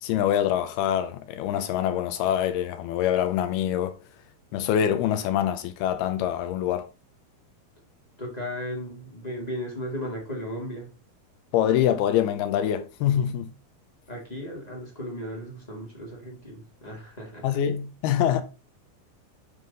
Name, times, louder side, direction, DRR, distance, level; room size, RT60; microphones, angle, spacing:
voice 1, 0.0-3.9 4.5-6.9 11.5-13.5 17.4-18.4, left 10 dB, 80° left, 2.5 m, -25 dB
voice 2, 8.2-10.9 14.1-17.5, equal, 30° left, 0.7 m, -35 dB
11.0 x 3.8 x 4.0 m
omnidirectional pair, 4.7 m